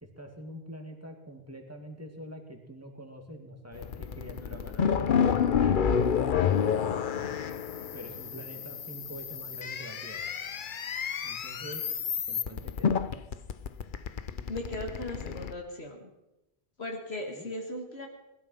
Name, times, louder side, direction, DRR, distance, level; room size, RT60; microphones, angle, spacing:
voice 1, 0.0-7.4 7.9-10.3 11.2-11.8 12.3-13.0 17.4-17.5, right 1 dB, 15° right, 3 dB, 2.4 m, -45 dB
sound 1, 3.8-15.5, left 7 dB, 55° left, 0.9 m, -29 dB
voice 2, 14.5-16.1 16.8-18.1, left 1 dB, 75° left, 1 dB, 2.2 m, -37 dB
20.0 x 12.5 x 5.8 m, 0.95 s
omnidirectional pair, 1.1 m